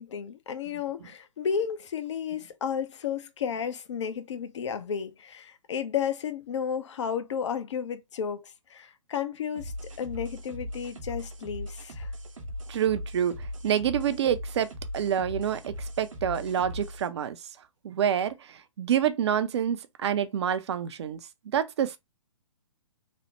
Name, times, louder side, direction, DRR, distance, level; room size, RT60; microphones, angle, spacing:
voice 1, 0.0-12.1, left 7 dB, 60° left, 0.5 m, -33 dB
sound 1, 9.6-17.1, equal, 75° right, 0.8 m, -39 dB
voice 2, 12.7-14.7 14.9-17.4 17.8-21.2 21.5-22.0, right 9 dB, 55° right, 0.4 m, -27 dB
3.1 x 2.0 x 2.9 m
figure-of-eight pair, 125°, 17 cm